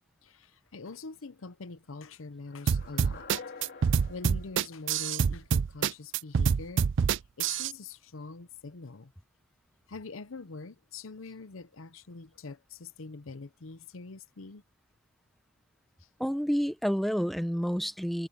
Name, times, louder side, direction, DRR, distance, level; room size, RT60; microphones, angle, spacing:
voice 1, 0.2-3.5 4.0-9.1 9.9-14.6 16.0-16.1, left 3 dB, 90° left, 0.8 m, -44 dB
sound 1, 2.5-5.6, left 4 dB, 55° left, 2.6 m, -48 dB
sound 2, 2.7-7.7, right 6 dB, 65° right, 0.4 m, -26 dB
voice 2, 16.2-18.3, equal, ahead, 1.0 m, -29 dB
head